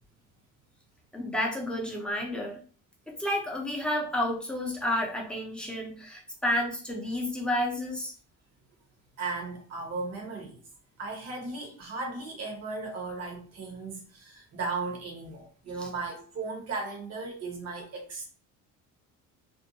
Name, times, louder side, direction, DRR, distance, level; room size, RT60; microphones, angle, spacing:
voice 1, 1.1-2.6 3.1-8.1, left 1 dB, 5° left, 0.6 m, -30 dB
voice 2, 9.2-10.6 11.0-18.3, right 3 dB, 45° right, 1.0 m, -36 dB
2.6 x 2.1 x 2.7 m
cardioid pair, 120°, 34 cm